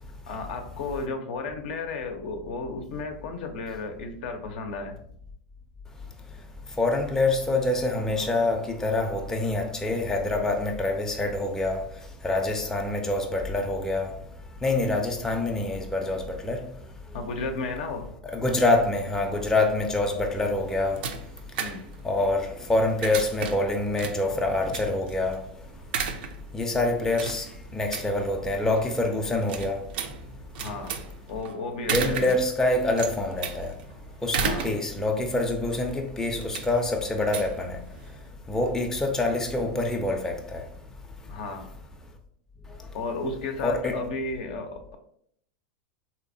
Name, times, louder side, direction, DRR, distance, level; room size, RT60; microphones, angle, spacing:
voice 1, 0.3-5.0 17.1-18.1 21.6-21.8 30.6-31.0 31.3-32.3 34.4-34.7 41.2-41.6 42.9-45.0, left 3 dB, 65° left, 0.6 m, -33 dB
voice 2, 6.8-11.8 12.2-14.1 14.6-16.6 18.2-21.0 22.0-25.4 26.5-27.5 27.7-29.8 31.9-33.7 34.2-37.8 38.5-40.6 43.6-44.0, left 2 dB, 10° left, 0.5 m, -26 dB
sound 1, 20.3-38.3, right 6 dB, 70° right, 0.4 m, -36 dB
3.3 x 2.8 x 2.6 m
hypercardioid pair, 95°, 5 cm